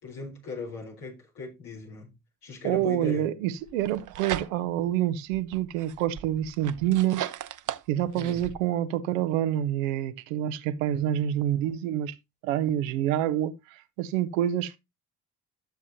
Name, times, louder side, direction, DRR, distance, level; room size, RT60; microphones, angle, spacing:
voice 1, 0.0-2.1 2.4-3.3 8.1-8.5, left 3 dB, 70° left, 4.4 m, -38 dB
voice 2, 2.6-7.2 7.9-12.1 12.4-14.8, right 11 dB, 80° right, 0.8 m, -27 dB
sound 1, 3.7-4.9 5.3-8.6, right 11 dB, 50° right, 0.8 m, -37 dB
12.5 x 7.1 x 2.8 m
hypercardioid pair, 45°, 39 cm